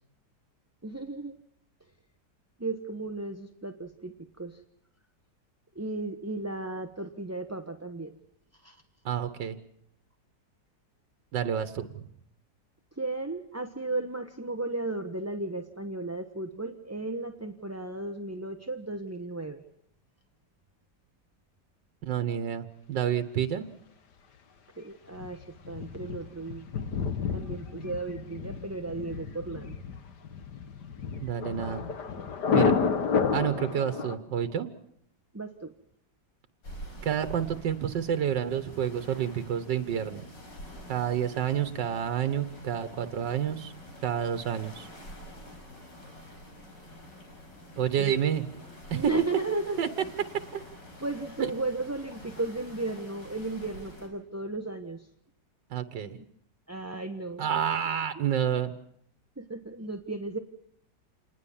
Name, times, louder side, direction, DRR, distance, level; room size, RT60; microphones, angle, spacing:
voice 1, 0.8-1.4 2.6-4.6 5.8-8.2 8.6-8.8 13.0-19.6 24.8-25.4 25.7-26.6 27.3-29.8 35.3-35.7 48.0-48.1 48.9-49.8 51.0-55.0 56.1-56.2 56.7-57.5 59.4-60.4, right 2 dB, 10° right, 5 dB, 0.8 m, -35 dB
voice 2, 9.1-9.6 11.3-12.0 22.0-23.7 31.2-31.8 32.5-32.7 33.3-34.7 37.0-40.2 40.9-43.7 44.0-44.9 47.8-48.4 48.9-49.0 49.8-49.9 50.5-50.6 51.4-51.5 55.7-56.2 57.4-58.7, right 9 dB, 90° right, 11 dB, 1.8 m, -29 dB
Thunder, 25.1-34.1, left 5 dB, 70° left, 2.1 m, -30 dB
sound 1, 36.6-54.1, equal, 85° left, 5.7 m, -47 dB
27.5 x 20.0 x 7.2 m, 0.68 s
omnidirectional pair, 1.9 m